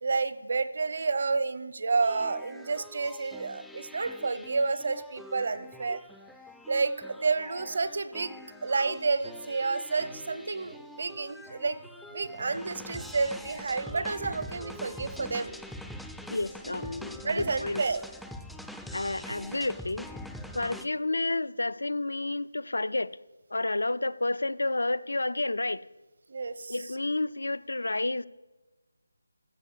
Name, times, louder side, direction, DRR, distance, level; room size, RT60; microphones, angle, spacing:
voice 1, 0.0-6.0 6.7-11.8 12.1-15.5 17.2-18.0 26.3-26.7, right 4 dB, 50° right, 0.7 m, -30 dB
sound 1, 2.0-20.9, left 1 dB, ahead, 0.3 m, -45 dB
voice 2, 16.3-17.8 18.9-20.1 20.5-23.2 23.5-25.8 26.7-28.3, left 2 dB, 90° left, 0.4 m, -30 dB
14.5 x 5.0 x 7.2 m
figure-of-eight pair, 170°, 0 cm